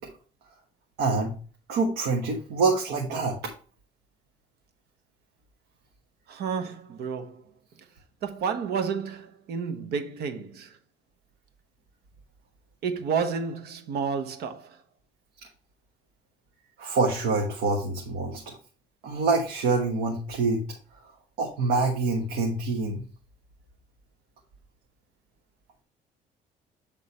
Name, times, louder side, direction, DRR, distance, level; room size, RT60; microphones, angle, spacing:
voice 1, 1.0-1.3 1.7-3.5 16.8-18.6 19.0-20.6 21.4-23.0, right 3 dB, 85° right, 1.4 m, -26 dB
voice 2, 6.3-7.4 8.2-10.8 12.8-14.8, right 6 dB, 70° right, 1.2 m, -31 dB
8.4 x 3.8 x 4.3 m
cardioid pair, 110°, 17 cm